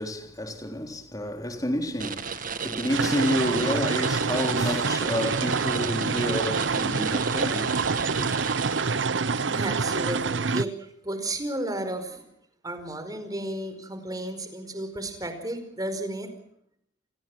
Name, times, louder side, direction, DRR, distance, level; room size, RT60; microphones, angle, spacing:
voice 1, 0.0-8.3, equal, 20° left, 3.7 m, -30 dB
sound 1, 2.0-9.3, right 6 dB, 50° right, 1.9 m, -34 dB
sound 2, 2.9-10.6, right 4 dB, 85° right, 0.9 m, -26 dB
voice 2, 9.0-12.2 12.6-16.3, right 1 dB, 20° right, 4.9 m, -33 dB
29.5 x 20.5 x 6.1 m
head